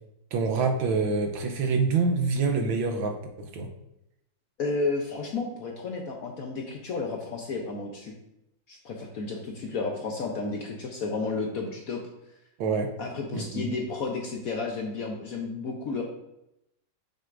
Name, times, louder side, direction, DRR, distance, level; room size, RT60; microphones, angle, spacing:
voice 1, 0.3-3.7 12.6-12.9 13.3-13.6, right 4 dB, 85° right, 4 dB, 1.6 m, -26 dB
voice 2, 4.6-8.1 8.7-12.0 13.0-16.0, left 3 dB, 60° left, 1 dB, 0.9 m, -32 dB
6.7 x 6.3 x 2.5 m, 0.85 s
omnidirectional pair, 2.1 m